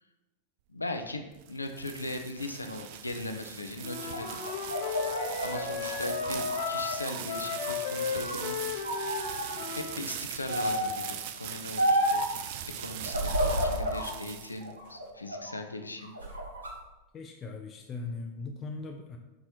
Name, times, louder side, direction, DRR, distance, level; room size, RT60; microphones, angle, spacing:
voice 1, 0.7-4.4 4.9-5.1 5.4-8.6 9.7-16.1, left 2 dB, 80° left, 6 dB, 0.6 m, -39 dB
sound 1, 1.1-14.9, right 10 dB, 50° right, 0.4 m, -41 dB
Wind instrument woodwind instrument, 3.8-10.1, left 6 dB, 55° left, 0.9 m, -35 dB
sound 2, 4.0-7.2 7.6-8.4 8.8-9.5 10.5-11.0 11.8-12.3 13.1-14.1 14.6-15.6 16.0-16.7, equal, 75° right, 1.4 m, -31 dB
voice 2, 17.1-19.2, left 3 dB, 25° left, 3 dB, 0.6 m, -39 dB
6.9 x 3.2 x 4.4 m, 1.0 s
figure-of-eight pair, 90°, 0 cm